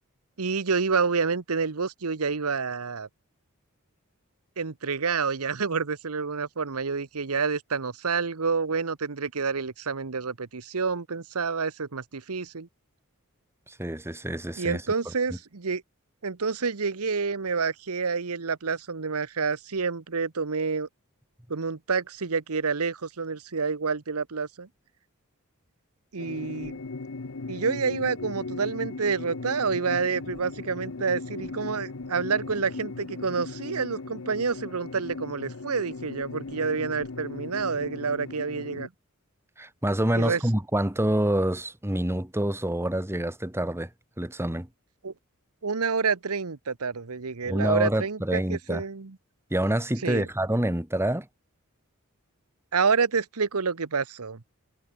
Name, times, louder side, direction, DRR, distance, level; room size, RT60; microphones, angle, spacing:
voice 1, 0.4-3.1 4.6-12.7 14.6-15.8 16.2-20.9 21.5-24.7 26.1-26.7 27.5-38.9 40.1-40.4 45.0-45.1 45.6-49.1 50.0-50.3 52.7-54.4, right 5 dB, 90° right, 1.0 m, -28 dB
voice 2, 13.7-14.8 39.6-43.9 44.2-44.7 47.4-48.8 49.5-51.3, right 1 dB, 10° right, 2.0 m, -27 dB
sound 1, 26.2-38.9, left 3 dB, 65° left, 0.9 m, -38 dB
head